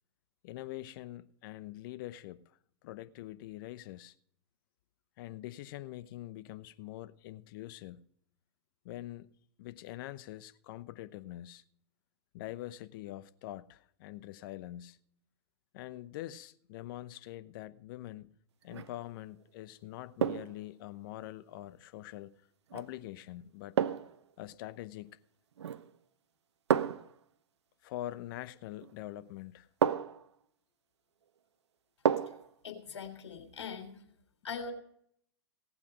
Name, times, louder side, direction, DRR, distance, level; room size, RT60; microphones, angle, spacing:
voice 1, 0.4-4.1 5.2-8.0 8.8-9.3 9.6-11.6 12.3-15.0 15.7-18.4 18.6-22.3 22.7-23.8 24.4-25.2 27.8-29.7, left 15 dB, 50° left, 0.8 m, -44 dB
sound 1, 18.6-19.0 20.2-20.6 22.7-22.9 23.8-24.2 25.6-26.0 26.7-27.1 28.8-28.9 29.8-30.3 32.1-32.5 32.9-33.0, right 8 dB, 75° right, 0.9 m, -31 dB
voice 2, 32.6-34.0 34.4-34.7, left 6 dB, 80° left, 3.4 m, -41 dB
18.0 x 8.4 x 5.1 m
hypercardioid pair, 115°, 15 cm